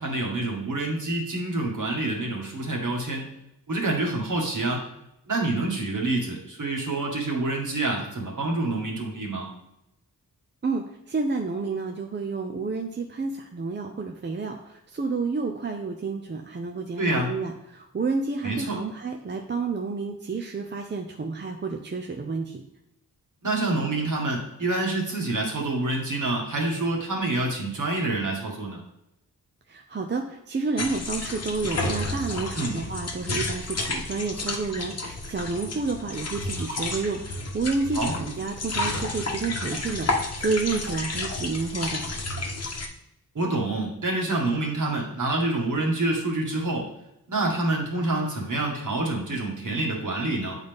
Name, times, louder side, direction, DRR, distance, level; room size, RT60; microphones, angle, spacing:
voice 1, 0.0-3.3 3.7-4.8 5.3-9.5 17.0-17.3 18.4-18.8 23.4-28.8 32.5-32.8 37.9-38.1 43.4-46.9 47.3-50.6, right 2 dB, 55° right, -1 dB, 1.8 m, -27 dB
voice 2, 10.6-22.6 29.7-42.0, right 4 dB, 30° right, 3 dB, 0.6 m, -30 dB
sound 1, 30.8-42.9, left 2 dB, 45° left, 1.0 m, -31 dB
8.4 x 4.1 x 3.5 m, 0.85 s
wide cardioid pair, 95°, 36 cm